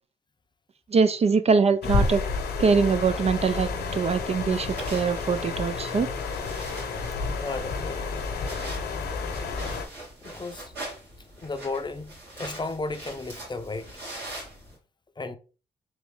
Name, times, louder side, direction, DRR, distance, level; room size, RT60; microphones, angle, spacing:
voice 1, 0.9-2.2 2.6-6.1, right 5 dB, 40° right, 0.4 m, -23 dB
sound 1, 1.8-9.9, left 4 dB, 75° left, 0.9 m, -30 dB
sound 2, 4.5-14.8, right 1 dB, 85° right, 2.1 m, -42 dB
voice 2, 7.3-8.3 10.2-10.7 11.4-13.9 15.2-15.4, left 3 dB, 25° left, 0.6 m, -34 dB
3.5 x 3.0 x 3.5 m
supercardioid pair, 50°, 17 cm